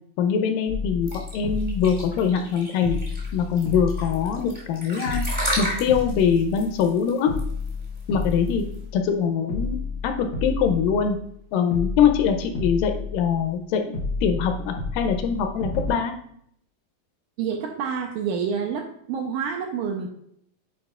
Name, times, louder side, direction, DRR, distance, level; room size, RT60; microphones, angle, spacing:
voice 1, 0.2-3.0 3.3-5.2 5.6-7.3 8.1-8.7 8.9-9.8 10.0-11.2 11.5-13.9 14.2-16.1, left 7 dB, 80° left, 6 dB, 2.1 m, -23 dB
sound 1, 0.7-2.5 2.8-4.7 5.0-6.9 7.3-9.2 9.5-11.4 11.7-13.6 13.9-15.9, left 3 dB, 65° left, 1.2 m, -31 dB
sound 2, 1.1-8.7, equal, 10° right, 0.5 m, -33 dB
voice 2, 17.4-20.1, right 6 dB, 80° right, 3 dB, 1.9 m, -28 dB
8.7 x 4.7 x 2.3 m, 0.69 s
omnidirectional pair, 4.1 m